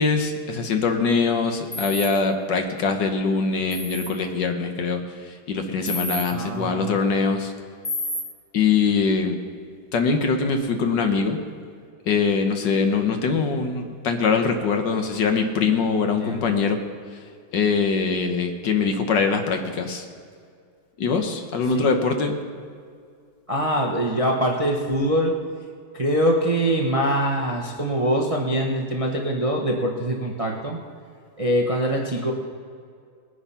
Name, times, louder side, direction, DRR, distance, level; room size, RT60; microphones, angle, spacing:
voice 1, 0.0-5.0 5.5-7.5 8.5-9.4 9.9-11.4 12.1-16.8 17.5-20.0 21.0-22.4, left 5 dB, 65° left, 5 dB, 1.6 m, -23 dB
sound 1, 1.7-2.1 3.7-4.1 5.9-6.2 7.8-8.2, left 1 dB, 20° left, 2.0 m, -29 dB
voice 2, 6.3-6.9 16.2-16.7 21.7-21.8 23.5-25.4 25.9-30.8 31.4-32.3, equal, 25° right, 0 dB, 0.7 m, -23 dB
20.0 x 8.2 x 5.6 m, 2.2 s
omnidirectional pair, 2.1 m